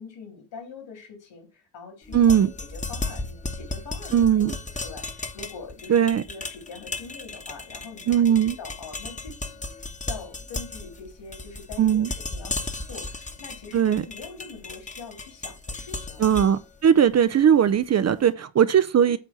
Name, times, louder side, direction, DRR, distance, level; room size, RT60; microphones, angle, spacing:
voice 1, 0.0-6.0 6.3-16.3, left 4 dB, 65° left, 3.9 m, -43 dB
sound 1, 2.0-18.1, left 2 dB, 15° left, 1.1 m, -36 dB
voice 2, 2.1-2.5 4.1-4.5 5.9-6.2 8.1-8.6 11.8-12.1 13.7-14.0 16.2-19.2, right 9 dB, 35° right, 0.5 m, -19 dB
8.6 x 3.3 x 6.1 m
supercardioid pair, 80°, 46 cm